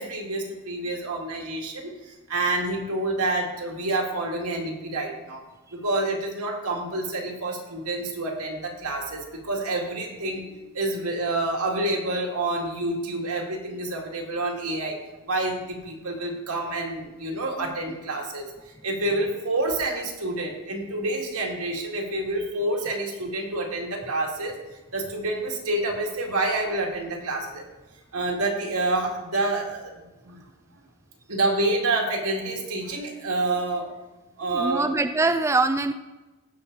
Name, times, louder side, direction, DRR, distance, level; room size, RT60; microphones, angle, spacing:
voice 1, 0.0-5.4 5.7-15.0 15.3-24.6 24.9-27.6 28.1-30.4 31.3-33.9 34.4-34.9, right 2 dB, 80° right, 0 dB, 2.2 m, -28 dB
voice 2, 34.5-35.9, right 3 dB, 15° right, 9 dB, 0.3 m, -23 dB
16.5 x 5.8 x 4.0 m, 1.1 s
head